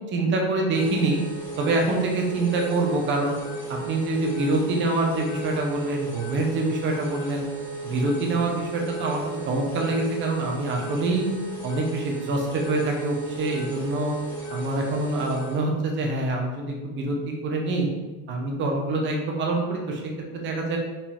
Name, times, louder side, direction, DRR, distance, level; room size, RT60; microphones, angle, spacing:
voice 1, 0.1-1.2 1.6-3.3 3.7-7.4 7.8-11.2 11.6-14.1 14.5-17.9 18.3-20.8, right 2 dB, 25° right, 1 dB, 0.9 m, -25 dB
sound 1, 0.7-15.6, right 2 dB, 5° left, 1.6 m, -35 dB
5.1 x 5.0 x 3.6 m, 1.3 s
cardioid pair, 170°, 46 cm